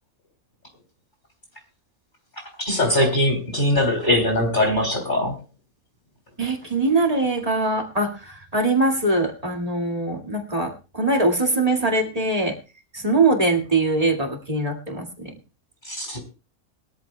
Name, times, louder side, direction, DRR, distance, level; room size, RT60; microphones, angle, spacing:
voice 1, 2.6-5.4 15.8-16.2, left 1 dB, 35° left, 2 dB, 3.4 m, -21 dB
voice 2, 6.4-12.6 12.9-15.3, right 2 dB, 25° right, 2 dB, 2.1 m, -22 dB
22.0 x 13.5 x 2.2 m, 0.31 s
omnidirectional pair, 1.5 m